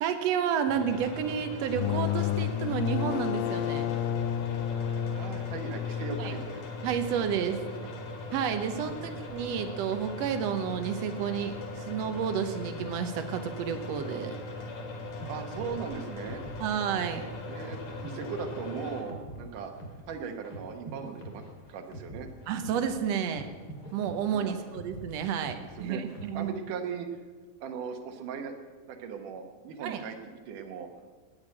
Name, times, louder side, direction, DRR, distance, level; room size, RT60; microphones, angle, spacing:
voice 1, 0.0-3.9 6.2-6.3 6.8-7.6 8.3-14.4 16.6-17.2 22.5-23.5 23.9-26.5 29.8-30.0, right 8 dB, 80° right, 7 dB, 1.5 m, -31 dB
sound 1, 0.7-19.0, left 2 dB, 55° left, 3.0 m, -40 dB
sound 2, 1.6-7.1, left 11 dB, 80° left, 2.0 m, -31 dB
voice 2, 4.8-6.6 7.5-7.9 8.6-9.2 15.3-16.4 17.5-19.7 20.1-21.4 21.7-22.3 24.3-24.5 25.8-26.0 26.3-27.2 27.6-28.5 28.9-30.2 30.5-30.9, right 6 dB, 65° right, 5 dB, 2.6 m, -38 dB
sound 3, 15.2-26.5, right 1 dB, 30° left, 2.1 m, -46 dB
19.0 x 8.1 x 7.7 m, 1.4 s
omnidirectional pair, 4.3 m